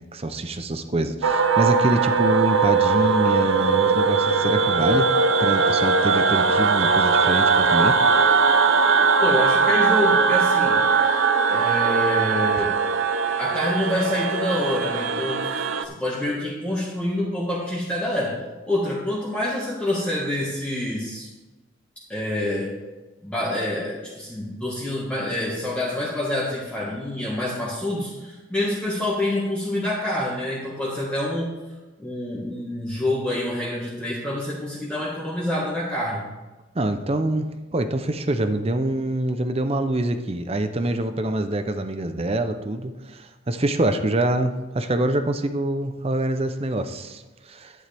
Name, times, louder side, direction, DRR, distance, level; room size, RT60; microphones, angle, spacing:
voice 1, 0.1-5.1 5.4-8.0 36.7-47.7, right 1 dB, 30° right, 8 dB, 0.6 m, -25 dB
sound 1, 1.2-15.8, right 5 dB, 70° right, 0.7 m, -20 dB
voice 2, 9.2-10.8 11.1-11.2 11.5-12.7 13.4-18.4 18.6-21.3 22.1-22.7 23.2-31.5 32.0-36.2, left 1 dB, 5° left, -7 dB, 1.6 m, -27 dB
11.0 x 10.0 x 3.4 m, 1.2 s
head